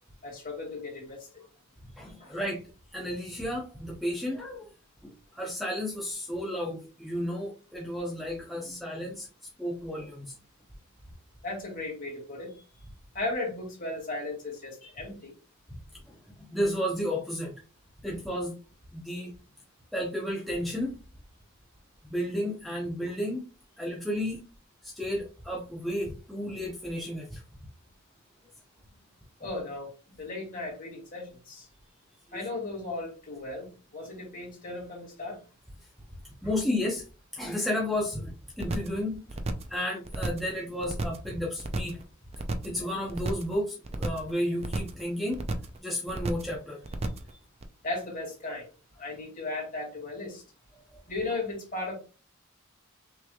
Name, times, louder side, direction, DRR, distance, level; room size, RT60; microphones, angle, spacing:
voice 1, 0.2-1.3 2.2-2.4 11.4-12.6 13.1-15.3 29.4-31.7 32.3-35.4 47.8-48.7 49.0-50.4 51.1-51.9, left 2 dB, 40° left, -1 dB, 2.2 m, -36 dB
voice 2, 2.0-2.6 2.9-4.7 5.0-9.3 9.6-10.4 16.1-17.5 18.0-18.5 18.9-19.3 19.9-20.9 22.1-23.4 23.8-24.4 24.8-27.4 36.4-37.0 37.3-39.2 39.7-42.0 42.6-45.4 45.8-46.8, left 1 dB, ahead, -3 dB, 0.8 m, -32 dB
sound 1, 38.6-39.0 39.3-39.7 40.0-40.5 40.8-41.3 41.6-42.0 42.3-42.8 43.1-43.5 43.8-44.3 44.6-45.0 45.3-45.8 46.1-46.5 46.8-47.3 47.6-47.7, right 2 dB, 30° right, 0.5 m, -32 dB
5.9 x 3.2 x 2.3 m, 0.35 s
head